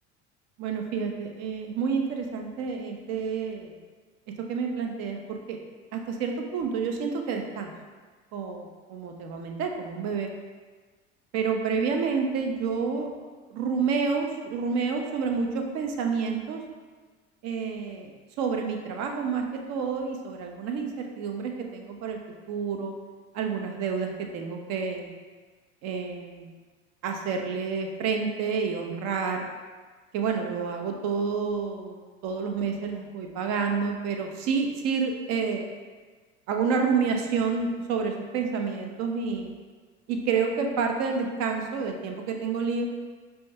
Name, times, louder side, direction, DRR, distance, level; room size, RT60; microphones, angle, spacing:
voice 1, 0.6-3.8 4.5-5.6 5.9-7.7 8.3-10.3 11.3-13.1 13.5-16.6 17.4-18.1 18.4-22.2 22.5-22.9 23.3-25.1 25.8-26.5 27.0-29.5 30.1-35.7 36.5-39.5 40.1-42.9, right 5 dB, 45° right, 3 dB, 0.5 m, -29 dB
5.2 x 2.3 x 2.7 m, 1.4 s
figure-of-eight pair, 65°, 36 cm